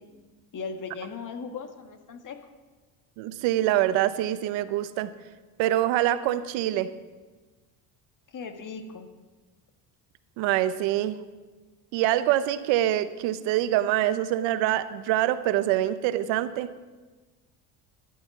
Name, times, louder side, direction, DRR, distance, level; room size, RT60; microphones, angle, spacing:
voice 1, 0.5-2.4 8.3-9.1, left 5 dB, 45° left, 6 dB, 1.8 m, -37 dB
voice 2, 3.2-5.1 5.6-6.9 10.4-11.2 11.9-16.7, right 13 dB, 80° right, 13 dB, 0.9 m, -25 dB
12.0 x 8.5 x 7.2 m, 1.3 s
supercardioid pair, 85°, 45 cm